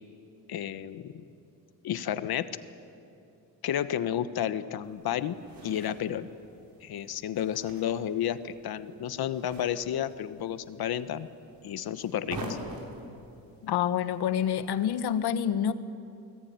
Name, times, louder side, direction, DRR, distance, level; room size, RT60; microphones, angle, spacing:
voice 1, 0.5-1.2 1.8-2.5 3.6-6.3 6.8-11.3 11.6-12.6, left 10 dB, 70° left, 1.2 m, -31 dB
sound 1, 4.8-15.2, right 1 dB, 60° right, 6.0 m, -46 dB
voice 2, 13.6-15.7, left 9 dB, 90° left, 1.3 m, -27 dB
29.5 x 19.5 x 9.5 m
cardioid pair, 155°, 38 cm